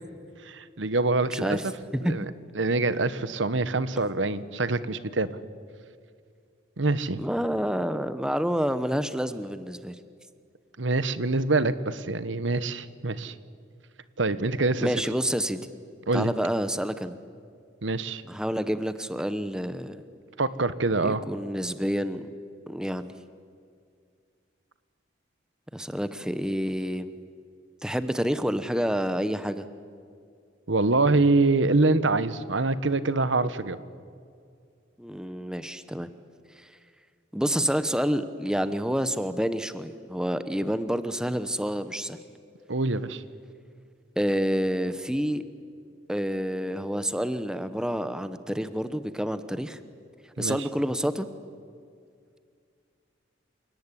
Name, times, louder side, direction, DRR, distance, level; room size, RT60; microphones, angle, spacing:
voice 1, 0.4-1.6 2.0-2.2 2.5-5.4 6.8-7.2 10.8-13.3 14.2-14.9 16.1-16.3 17.8-18.2 20.4-21.2 30.7-33.8 42.7-43.2 50.4-50.6, right 3 dB, 80° right, 14 dB, 1.2 m, -25 dB
voice 2, 1.3-1.7 1.9-2.1 7.2-10.0 14.8-15.6 16.1-17.1 18.3-20.0 21.0-22.3 22.7-23.1 25.7-27.1 27.8-29.7 35.0-36.1 36.6-36.7 37.3-42.2 44.2-45.4 46.1-49.8 50.4-51.3, equal, 5° right, 12 dB, 0.9 m, -28 dB
29.0 x 18.0 x 10.0 m, 2.3 s
head